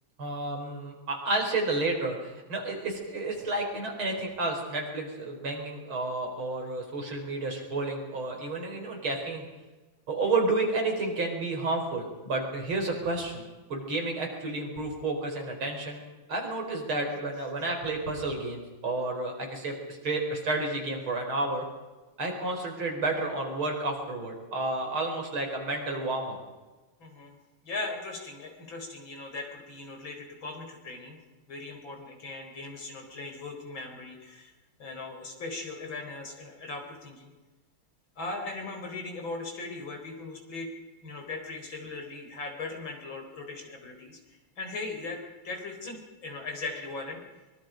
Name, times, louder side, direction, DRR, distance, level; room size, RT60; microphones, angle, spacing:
voice 1, 0.2-9.5 10.1-16.0 16.3-21.7 22.2-26.4, right 2 dB, 80° right, 2 dB, 5.3 m, -31 dB
voice 2, 27.0-27.4 27.6-31.2 31.5-34.5 34.8-37.3 38.2-40.7 41.0-47.2, left 3 dB, 70° left, 3 dB, 4.9 m, -39 dB
24.0 x 22.5 x 5.2 m, 1.2 s
omnidirectional pair, 2.2 m